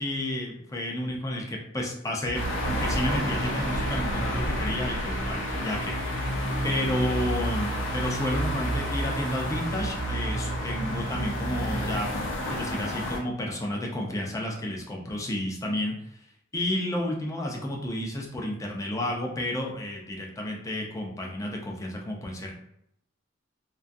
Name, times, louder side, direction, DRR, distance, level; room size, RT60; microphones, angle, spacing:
voice 1, 0.0-6.2 6.6-12.1 12.4-16.0 16.5-22.5, left 1 dB, 15° left, -1 dB, 0.4 m, -31 dB
sound 1, 2.2-12.0, right 2 dB, 75° right, 0.5 m, -33 dB
sound 2, 2.3-13.2, left 1 dB, 80° left, 0.5 m, -32 dB
2.3 x 2.3 x 2.5 m, 0.75 s
head